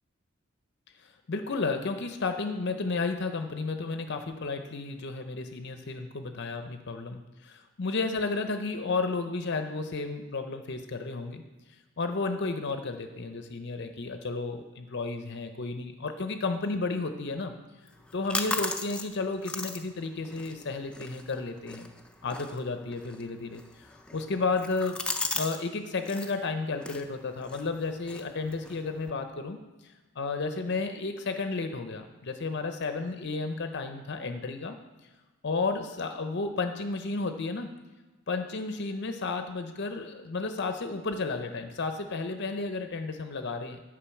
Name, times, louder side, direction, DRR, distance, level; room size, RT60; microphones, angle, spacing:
voice 1, 1.3-11.4 12.0-17.5 18.1-21.9 22.2-25.0 25.3-34.8 35.4-37.7 38.3-43.8, left 3 dB, 50° left, 7 dB, 0.6 m, -32 dB
sound 1, 17.9-25.6 25.9-26.4 26.8-29.1, left 2 dB, 5° left, 0.4 m, -38 dB
10.0 x 5.1 x 7.0 m, 1.2 s
head